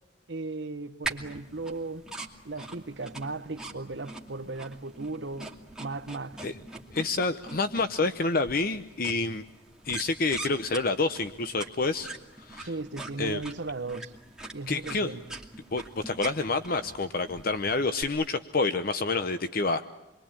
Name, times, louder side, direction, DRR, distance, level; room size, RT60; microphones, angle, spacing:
voice 1, 0.3-2.0 2.4-5.5 5.8-6.4 12.6-14.1 14.5-15.2, right 3 dB, 75° right, 1.1 m, -36 dB
sound 1, 1.0-18.0, right 3 dB, 5° right, 2.5 m, -43 dB
voice 2, 6.9-9.4 9.8-12.1 12.4-12.7 13.2-13.4 14.7-15.1 15.7-19.9, left 3 dB, 55° left, 0.9 m, -28 dB
28.0 x 22.5 x 8.9 m
head